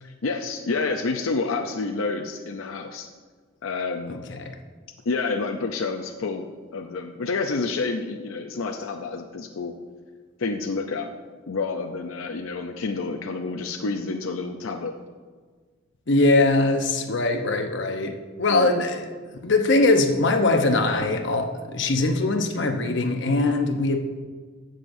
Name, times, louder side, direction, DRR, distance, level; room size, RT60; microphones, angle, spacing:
voice 1, 0.0-3.1 3.6-4.2 5.1-9.7 10.4-11.1 11.5-14.9 18.5-18.7, left 4 dB, 80° left, 3 dB, 0.6 m, -29 dB
voice 2, 4.1-4.5 16.1-24.0, left 2 dB, 60° left, 5 dB, 0.9 m, -22 dB
16.5 x 6.5 x 2.6 m, 1.5 s
head